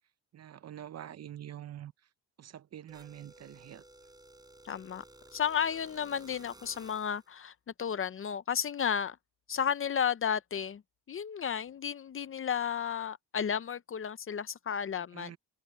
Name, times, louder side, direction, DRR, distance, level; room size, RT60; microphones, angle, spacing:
voice 1, 0.3-1.9 2.4-3.8 14.9-15.4, right 11 dB, 40° right, 0.6 m, -46 dB
sound 1, 2.9-7.3, right 2 dB, 10° right, 3.9 m, -55 dB
voice 2, 4.6-5.0 5.3-9.2 9.5-10.8 11.1-15.3, left 7 dB, 35° left, 0.5 m, -33 dB
cardioid pair, 160°, 39 cm